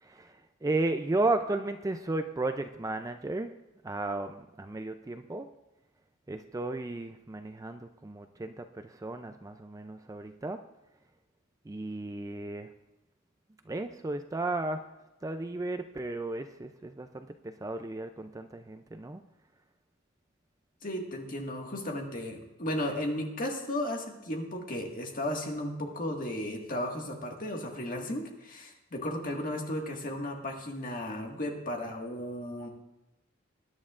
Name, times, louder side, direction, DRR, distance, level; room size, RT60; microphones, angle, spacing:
voice 1, 0.0-3.5 3.8-5.5 6.3-10.6 11.7-12.7 13.7-14.8 15.2-19.2, right 2 dB, 15° right, 8 dB, 0.4 m, -34 dB
voice 2, 20.8-32.7, left 1 dB, 40° left, 1 dB, 1.7 m, -35 dB
20.0 x 10.5 x 2.5 m, 0.97 s
head